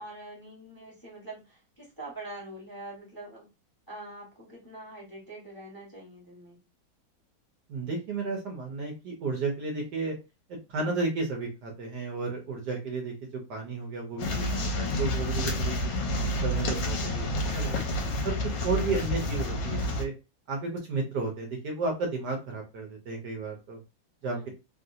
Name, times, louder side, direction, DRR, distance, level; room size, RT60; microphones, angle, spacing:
voice 1, 0.0-3.5 3.9-6.6 16.7-17.2 24.2-24.5, right 1 dB, 15° left, -4 dB, 1.0 m, -44 dB
voice 2, 7.7-10.1 10.5-17.3 17.5-17.8 18.2-20.1 20.5-23.8 24.2-24.5, right 3 dB, 65° right, 1 dB, 1.2 m, -33 dB
sound 1, 14.2-20.0, left 1 dB, 75° left, 1.3 m, -29 dB
3.2 x 2.5 x 2.7 m, 0.27 s
omnidirectional pair, 2.1 m